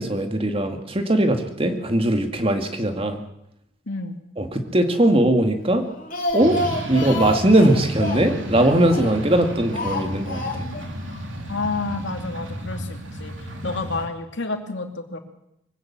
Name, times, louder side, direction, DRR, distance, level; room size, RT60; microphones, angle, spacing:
voice 1, 0.0-3.2 4.4-5.8 6.3-6.6 6.9-10.7, right 1 dB, 25° right, 6 dB, 2.1 m, -20 dB
voice 2, 3.9-4.2 11.5-13.3 13.6-15.2, left 3 dB, 60° left, 5 dB, 2.7 m, -29 dB
Speech, 5.8-9.3 9.7-10.9 11.1-11.2 11.5-11.6, left 1 dB, 40° left, 3.4 m, -29 dB
sound 1, 6.4-14.1, right 1 dB, 70° right, 3.2 m, -33 dB
24.0 x 17.0 x 7.4 m, 0.82 s
head